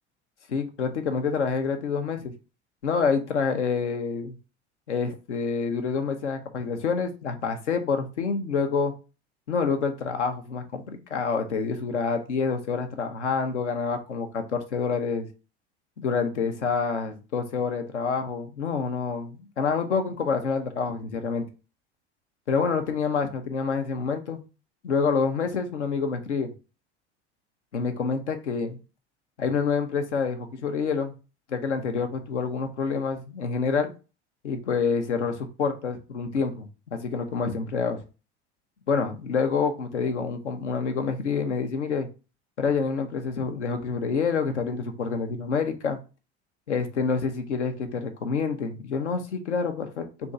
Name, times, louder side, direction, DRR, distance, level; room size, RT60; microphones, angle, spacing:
voice 1, 0.5-2.3 2.8-4.3 4.9-8.9 9.5-15.3 16.0-21.5 22.5-24.4 24.8-26.5 27.7-28.8 29.4-31.1 31.5-33.9 34.4-38.0 38.9-42.1 42.6-46.0 46.7-50.3, left 5 dB, 85° left, 6 dB, 0.7 m, -27 dB
3.5 x 2.7 x 4.2 m, 0.32 s
hypercardioid pair, 75°, 34 cm